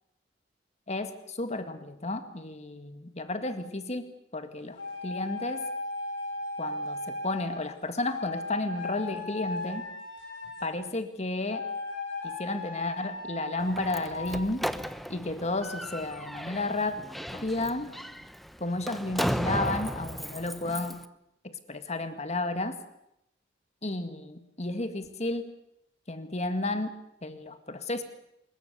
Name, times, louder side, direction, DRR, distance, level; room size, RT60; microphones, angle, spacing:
voice 1, 0.9-5.7 6.6-9.9 10.6-11.7 12.2-14.7 15.1-17.0 17.3-17.9 18.6-21.0 21.4-22.8 23.8-25.5 26.1-28.0, left 2 dB, 35° left, 9 dB, 2.0 m, -32 dB
sound 1, 4.8-7.7 8.1-10.8 11.5-14.3, left 2 dB, 85° left, 6.0 m, -37 dB
Slam, 13.6-21.0, equal, ahead, 0.8 m, -35 dB
25.0 x 21.5 x 6.9 m, 0.81 s
head